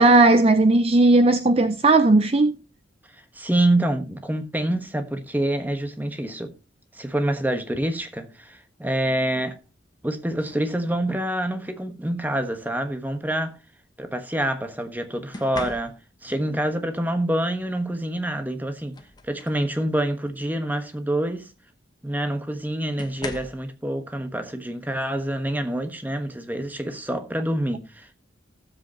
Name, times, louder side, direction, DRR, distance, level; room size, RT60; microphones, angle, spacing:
voice 1, 0.0-2.6, right 2 dB, 30° right, 0.5 m, -16 dB
voice 2, 3.1-6.6 6.9-9.6 10.0-13.6 14.0-19.0 19.2-21.5 22.0-28.1, right 1 dB, 10° right, 1.2 m, -26 dB
sound 1, 10.4-10.7 12.0-12.3 15.3-16.3 18.1-18.2 18.6-19.7 20.2-20.5 21.8-21.9 23.0-23.7 25.4-25.6 26.1-26.4, left 2 dB, 20° left, 1.2 m, -40 dB
16.5 x 7.8 x 2.9 m
head